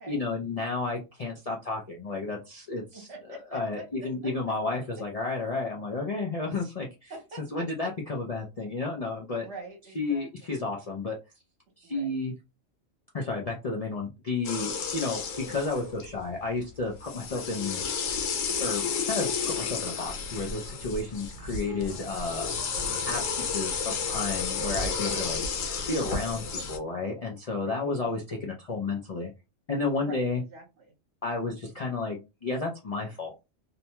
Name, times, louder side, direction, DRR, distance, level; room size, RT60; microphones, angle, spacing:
voice 1, 0.1-3.1 3.5-7.1 7.5-9.5 10.0-11.2 11.8-12.3 13.1-17.8 18.6-22.5 23.1-25.4 25.9-29.3 29.7-30.4 31.2-33.3, left 3 dB, 60° left, -2 dB, 0.3 m, -32 dB
voice 2, 2.9-4.3 7.1-7.9 9.4-10.6 11.8-12.1 21.7-22.2 25.6-26.6 27.6-28.0 29.9-30.9, right 3 dB, 60° right, -2 dB, 1.1 m, -46 dB
sound 1, 14.4-16.2 17.0-26.8, left 5 dB, 90° left, 1.0 m, -32 dB
2.7 x 2.1 x 2.8 m, 0.26 s
omnidirectional pair, 1.3 m